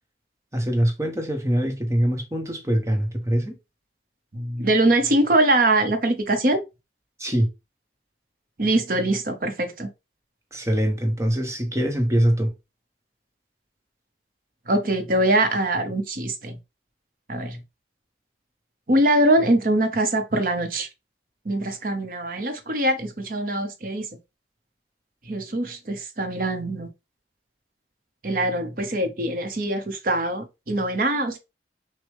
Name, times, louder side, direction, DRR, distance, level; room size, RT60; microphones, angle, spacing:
voice 1, 0.5-3.5 7.2-7.5 10.5-12.5, equal, 15° right, 1.0 m, -23 dB
voice 2, 4.3-6.6 8.6-9.9 14.7-16.6 17.3-17.6 18.9-20.9 21.4-24.1 25.3-26.9 28.2-31.4, right 1 dB, 50° right, 0.9 m, -23 dB
6.2 x 2.2 x 3.4 m
head